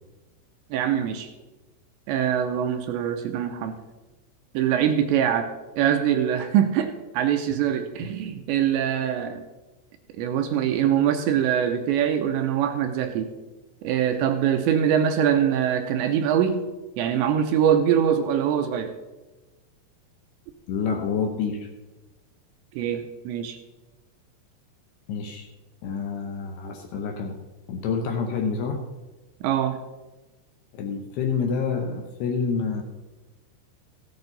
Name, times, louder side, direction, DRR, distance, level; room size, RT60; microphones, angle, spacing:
voice 1, 0.7-1.3 2.1-3.8 4.5-9.4 10.2-13.3 13.8-16.6 17.0-18.9 22.8-23.6 29.4-29.8, right 9 dB, 80° right, 6 dB, 2.7 m, -23 dB
voice 2, 20.7-21.7 25.1-25.5 25.8-27.3 27.7-28.8 30.7-32.8, left 5 dB, 75° left, 3 dB, 2.5 m, -28 dB
15.5 x 9.0 x 4.0 m, 1.1 s
omnidirectional pair, 5.5 m